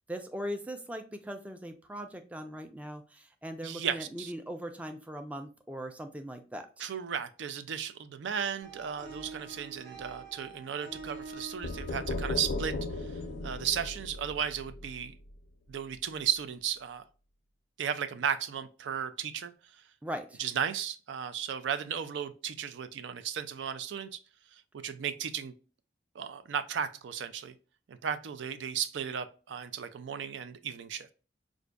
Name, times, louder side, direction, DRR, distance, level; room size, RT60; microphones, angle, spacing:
voice 1, 0.1-6.7 20.0-20.4, equal, 10° right, 0.3 m, -40 dB
voice 2, 3.6-4.3 6.8-13.1 13.4-15.1 15.7-17.0 17.8-19.5 20.4-24.2 24.8-25.5 26.2-27.5 27.9-31.1, right 8 dB, 85° right, 0.4 m, -35 dB
sound 1, 8.6-14.1, right 4 dB, 70° right, 1.7 m, -47 dB
sound 2, 11.6-15.4, left 2 dB, 80° left, 0.4 m, -36 dB
4.9 x 2.5 x 2.2 m
head